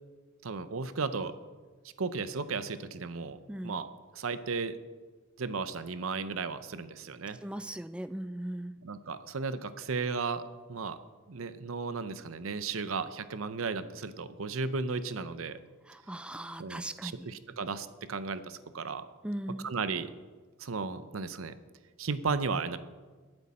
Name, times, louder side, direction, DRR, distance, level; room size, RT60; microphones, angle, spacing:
voice 1, 0.4-1.3 2.0-3.9 4.1-4.8 5.4-7.4 8.8-10.4 10.7-11.0 11.3-15.6 16.6-19.0 19.6-20.1 20.6-21.5 22.0-22.8, right 4 dB, 75° right, 12 dB, 0.7 m, -35 dB
voice 2, 7.4-8.8 15.9-17.3 19.2-19.7, right 1 dB, 5° right, 11 dB, 0.4 m, -38 dB
20.5 x 7.9 x 4.3 m, 1.4 s
head